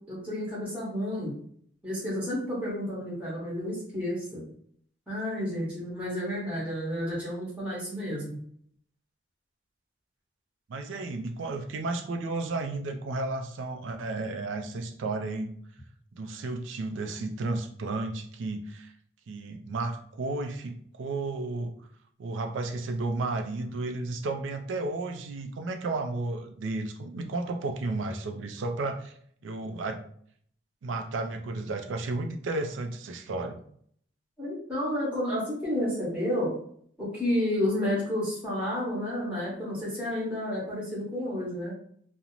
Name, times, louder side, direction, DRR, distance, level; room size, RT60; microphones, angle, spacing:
voice 1, 0.1-1.3 1.8-4.4 5.1-8.4 34.4-36.5 37.0-41.7, left 1 dB, 5° right, -6 dB, 0.9 m, -31 dB
voice 2, 10.7-15.5 16.1-18.9 19.3-21.7 22.2-29.1 29.4-30.0 30.8-33.6, right 2 dB, 75° right, 5 dB, 0.4 m, -33 dB
2.5 x 2.0 x 2.9 m, 0.62 s
head